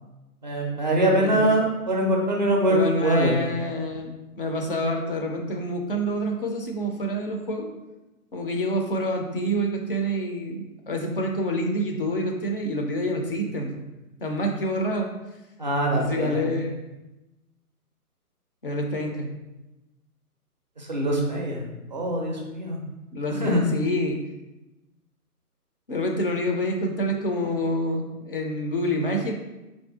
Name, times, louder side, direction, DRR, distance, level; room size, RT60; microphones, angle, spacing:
voice 1, 0.4-3.4 15.6-16.5 20.8-21.6 21.9-22.8 23.3-23.6, right 1 dB, 30° right, -1 dB, 0.4 m, -23 dB
voice 2, 2.7-4.1 4.4-7.7 8.3-13.7 14.2-15.1 15.9-16.9 18.6-19.3 23.1-24.2 25.9-29.3, equal, 40° left, 2 dB, 0.4 m, -27 dB
4.0 x 2.6 x 3.5 m, 1.0 s
hypercardioid pair, 150°, 46 cm